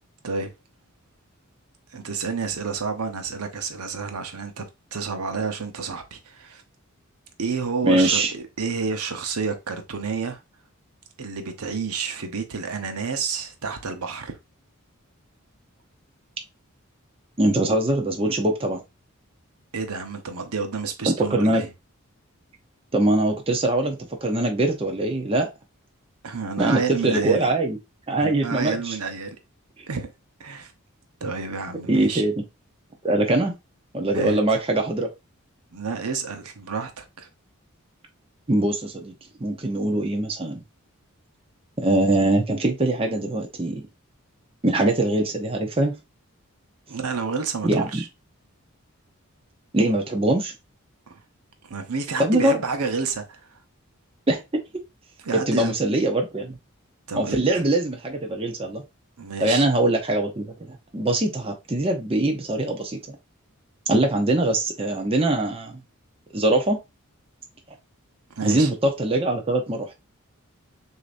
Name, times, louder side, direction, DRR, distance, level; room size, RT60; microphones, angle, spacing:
voice 1, 1.9-4.7 4.9-6.6 7.4-10.4 11.2-14.4 19.7-21.7 26.2-27.5 28.1-29.4 29.9-30.1 30.4-30.7 31.2-32.2 34.1-34.4 35.7-37.3 46.9-48.1 51.1-51.2 51.6-53.4 55.2-55.7 57.1-57.4 59.2-59.6 68.3-68.7, right 5 dB, 85° right, 0.8 m, -30 dB
voice 2, 7.8-8.3 17.4-18.8 21.1-21.6 22.9-25.5 26.6-27.8 28.1-29.0 31.9-32.3 33.0-33.5 33.9-35.1 38.5-39.1 39.4-40.6 41.8-43.8 44.6-45.9 47.6-48.0 49.7-50.5 52.2-52.6 54.3-54.4 55.3-56.6 57.1-58.8 59.4-63.2 63.9-65.8 66.3-66.8 68.4-69.9, right 1 dB, 25° right, 0.7 m, -22 dB
6.5 x 2.8 x 2.5 m
head